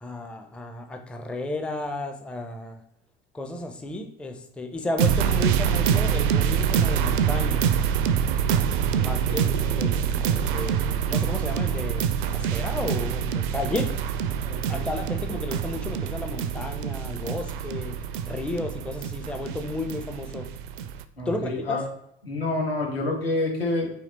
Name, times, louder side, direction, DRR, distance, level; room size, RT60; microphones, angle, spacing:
voice 1, 0.0-2.8 3.3-7.7 8.9-13.9 14.7-18.0 18.3-20.5 21.3-21.8, left 2 dB, 5° left, 5 dB, 0.5 m, -33 dB
sound 1, 5.0-21.0, right 8 dB, 60° right, 0.4 m, -25 dB
voice 2, 9.0-9.8 14.4-14.9 21.2-21.8 22.2-23.9, left 2 dB, 80° left, -2 dB, 1.3 m, -29 dB
4.3 x 2.9 x 3.9 m, 0.74 s
figure-of-eight pair, 65°, 29 cm